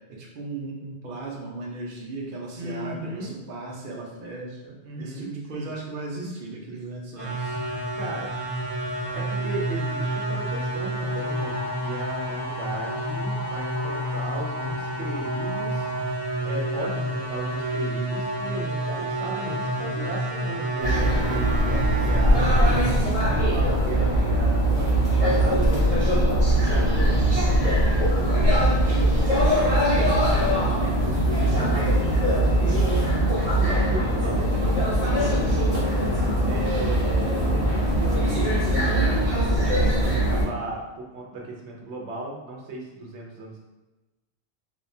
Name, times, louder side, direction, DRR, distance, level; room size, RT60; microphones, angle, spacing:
voice 1, 0.2-7.6 34.5-34.7, right 3 dB, 55° right, -3 dB, 0.9 m, -36 dB
voice 2, 2.6-3.3 4.8-5.7 7.9-8.3 9.1-15.9 16.4-22.5 23.0-26.0 26.3-28.6 28.8-30.2 30.5-32.0 32.3-33.0 33.5-35.4 36.4-43.6, right 2 dB, 90° right, -1 dB, 1.0 m, -36 dB
sound 1, 7.2-22.8, right 1 dB, 25° left, 1.3 m, -29 dB
sound 2, 11.0-16.1, left 3 dB, 65° left, 0.9 m, -38 dB
sound 3, 20.8-40.4, right 1 dB, 35° right, 1.2 m, -21 dB
3.4 x 3.2 x 2.6 m, 1.1 s
omnidirectional pair, 1.1 m